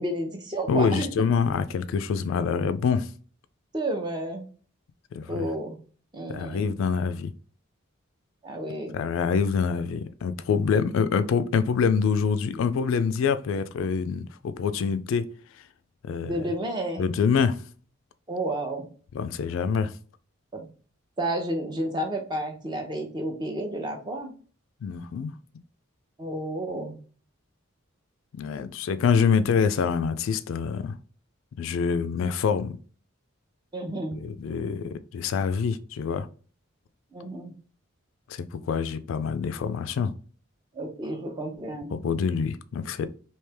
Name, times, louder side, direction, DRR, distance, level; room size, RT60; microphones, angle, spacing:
voice 1, 0.0-1.1 3.7-4.5 5.3-5.8 6.1-6.7 8.4-9.0 16.3-17.1 18.3-18.9 20.5-20.7 21.2-24.3 26.2-27.0 33.7-34.2 37.1-37.5 40.7-41.9, right 1 dB, 20° right, 0.6 m, -31 dB
voice 2, 0.7-3.1 5.1-5.5 6.3-7.3 8.9-15.3 16.0-16.4 17.0-17.6 19.1-19.9 24.8-25.3 28.3-31.0 31.6-32.8 34.1-36.3 38.3-40.1 41.9-43.1, left 6 dB, 70° left, 0.3 m, -26 dB
3.2 x 2.8 x 3.3 m
head